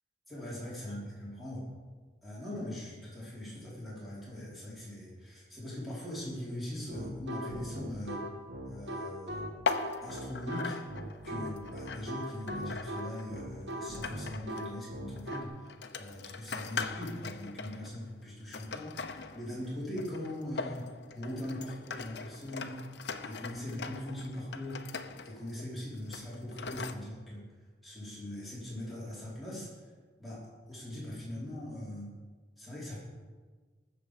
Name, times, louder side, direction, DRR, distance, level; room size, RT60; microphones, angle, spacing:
voice 1, 0.3-1.6 2.2-8.2 8.6-9.5 10.0-10.8 11.2-15.5 16.0-20.9 21.1-22.8 23.2-24.8 25.2-27.4 27.8-29.7 30.2-32.1 32.6-33.0, left 1 dB, ahead, -9 dB, 4.8 m, -41 dB
sound 1, 6.9-15.4, equal, 85° right, 1.6 m, -39 dB
sound 2, 9.7-14.7 15.2-26.9, left 4 dB, 75° left, 0.8 m, -41 dB
19.0 x 7.8 x 5.2 m, 1.4 s
head